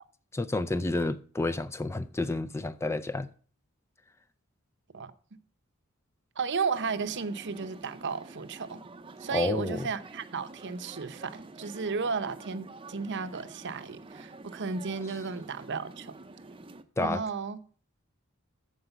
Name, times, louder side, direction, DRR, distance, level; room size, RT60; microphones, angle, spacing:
voice 1, 0.3-3.3 9.3-9.9 17.0-17.2, left 2 dB, 10° left, 0.4 m, -30 dB
voice 2, 6.4-8.8 9.2-16.2 17.0-17.6, right 5 dB, 55° right, 0.8 m, -34 dB
sound 1, 6.7-16.8, right 3 dB, 25° right, 0.6 m, -48 dB
14.0 x 4.9 x 6.8 m
head